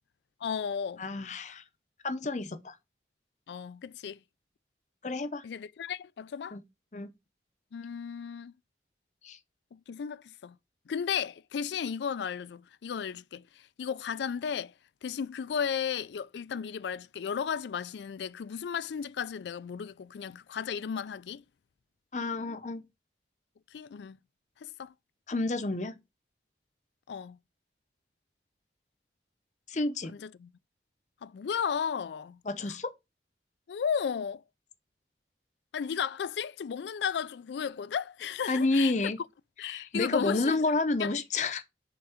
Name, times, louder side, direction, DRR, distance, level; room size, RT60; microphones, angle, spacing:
voice 1, 0.4-1.0 3.5-4.2 5.4-6.6 7.7-8.5 9.7-10.6 10.9-14.7 15.0-21.4 23.7-24.2 24.6-24.9 27.1-27.4 30.1-30.5 31.2-32.4 33.7-34.4 35.7-38.9 39.6-40.6 41.0-41.1, left 7 dB, 75° left, 0.4 m, -34 dB
voice 2, 1.0-1.6 2.0-2.8 5.0-5.4 6.5-6.6 6.9-7.1 9.2-9.4 22.1-22.8 25.3-26.0 29.7-30.1 32.5-32.9 38.5-39.2 39.7-41.6, left 2 dB, 40° left, 0.6 m, -30 dB
7.0 x 3.8 x 4.9 m
head